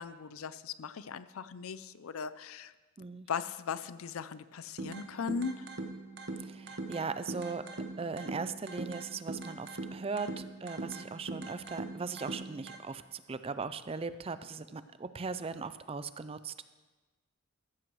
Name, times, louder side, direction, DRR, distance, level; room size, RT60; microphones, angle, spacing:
voice 1, 0.0-2.7 3.3-5.7, left 6 dB, 85° left, 14 dB, 0.5 m, -38 dB
sound 1, 4.8-12.8, right 2 dB, 55° right, 1.0 m, -42 dB
voice 2, 6.4-7.6 8.0-16.5, right 4 dB, 30° right, 13 dB, 0.4 m, -39 dB
14.5 x 13.5 x 3.1 m, 1.2 s
head